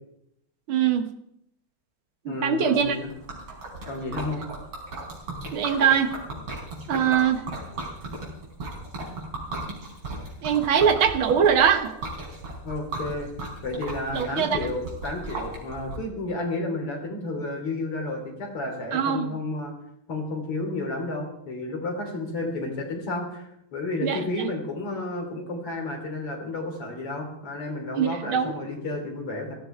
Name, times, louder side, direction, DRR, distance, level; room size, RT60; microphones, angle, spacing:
voice 1, 0.7-1.1 2.3-3.0 5.5-6.1 6.9-7.4 10.4-11.9 14.1-14.6 18.9-19.3 24.0-24.2 28.0-28.5, right 7 dB, 70° right, 8 dB, 2.1 m, -22 dB
voice 2, 2.3-3.1 3.9-4.4 12.6-13.3 13.6-19.7 20.1-29.6, left 2 dB, 90° left, 2 dB, 4.5 m, -31 dB
Liquid, 2.8-16.0, right 2 dB, 85° right, 5.4 m, -36 dB
17.0 x 15.0 x 4.6 m, 0.76 s
omnidirectional pair, 2.4 m